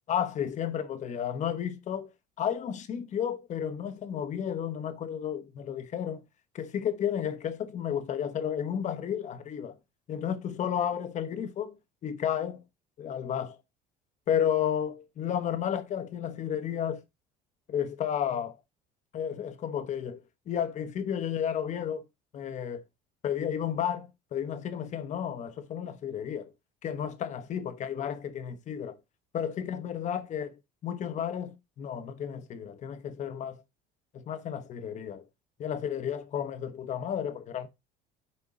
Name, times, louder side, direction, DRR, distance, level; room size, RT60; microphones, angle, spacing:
voice 1, 0.1-2.1 2.4-6.2 6.5-9.8 10.1-11.8 12.0-12.6 13.0-13.6 14.3-17.0 17.7-18.6 19.1-20.2 20.5-22.0 22.3-22.8 23.2-26.5 26.8-29.0 29.3-30.6 30.8-33.6 34.1-35.2 35.6-37.7, left 9 dB, 40° left, 1.0 m, -32 dB
9.7 x 4.5 x 3.7 m
cardioid pair, 150°, 19 cm